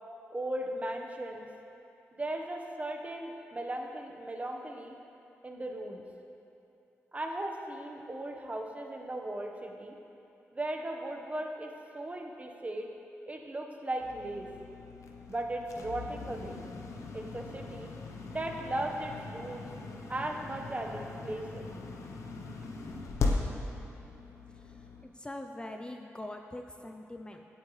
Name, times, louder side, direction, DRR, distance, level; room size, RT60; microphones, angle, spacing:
voice 1, 0.3-1.5 2.1-4.9 5.4-6.0 7.1-10.0 10.5-12.9 13.3-14.5 15.3-16.6 17.1-17.9 18.3-19.7 20.1-21.7, right 1 dB, 30° right, 2 dB, 1.2 m, -37 dB
sound 1, 14.0-25.0, left 3 dB, 80° left, 0.9 m, -39 dB
voice 2, 24.5-27.5, left 1 dB, 20° left, 4 dB, 0.6 m, -43 dB
16.5 x 8.4 x 3.3 m, 2.7 s
cardioid pair, 65°, 5 cm